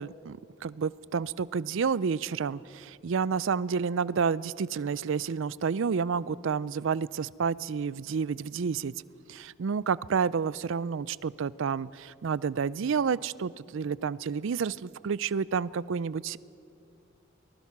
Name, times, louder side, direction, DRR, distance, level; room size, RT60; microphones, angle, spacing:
voice 1, 0.0-8.9 9.3-16.4, right 6 dB, 65° right, 20 dB, 0.4 m, -30 dB
23.5 x 19.5 x 6.0 m, 2.6 s
head